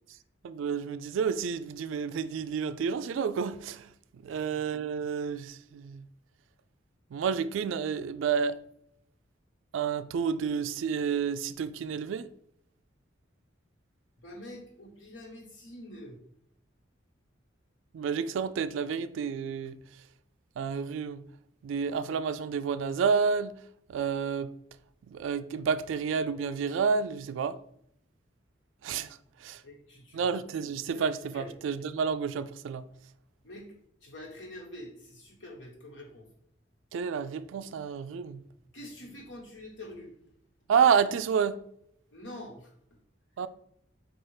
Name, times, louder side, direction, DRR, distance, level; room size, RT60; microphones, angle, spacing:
voice 1, 0.4-6.0 7.1-8.6 9.7-12.3 17.9-19.8 20.6-21.2 21.6-23.6 23.9-24.5 25.1-27.6 28.8-29.6 30.1-32.9 36.9-38.4 40.7-41.6 43.4-43.5, right 6 dB, 80° right, 0.3 m, -30 dB
voice 2, 14.2-16.2 29.6-30.3 30.9-31.0 31.3-31.5 33.4-33.7 34.0-36.3 38.7-40.1 42.1-43.0, left 1 dB, 70° left, 1.3 m, -46 dB
4.4 x 2.4 x 4.7 m
head